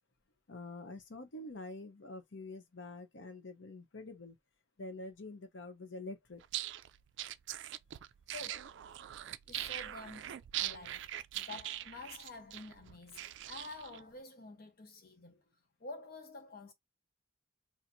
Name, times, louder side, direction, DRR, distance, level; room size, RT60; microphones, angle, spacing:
voice 1, 0.5-4.4 4.8-6.4, left 2 dB, 75° left, 0.8 m, -46 dB
sound 1, 6.4-14.0, right 13 dB, 65° right, 0.3 m, -42 dB
voice 2, 8.3-8.9 9.4-10.3 10.6-15.4 15.8-16.7, left 3 dB, 50° left, 1.0 m, -49 dB
4.4 x 2.1 x 2.6 m
head